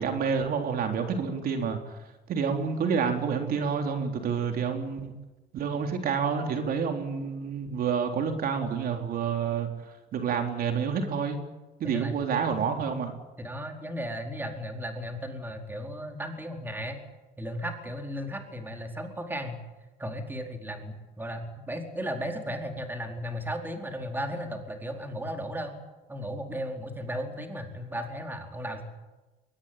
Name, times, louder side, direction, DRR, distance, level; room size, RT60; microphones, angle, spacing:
voice 1, 0.0-2.0 2.3-5.1 5.5-9.7 10.1-11.4 11.8-13.1, right 6 dB, 60° right, 4 dB, 3.7 m, -28 dB
voice 2, 11.8-12.2 13.4-17.0 17.4-19.6 20.0-25.7 26.1-28.8, equal, 10° right, 3 dB, 4.5 m, -35 dB
23.0 x 19.5 x 8.9 m, 1.1 s
cardioid pair, 110°, 17 cm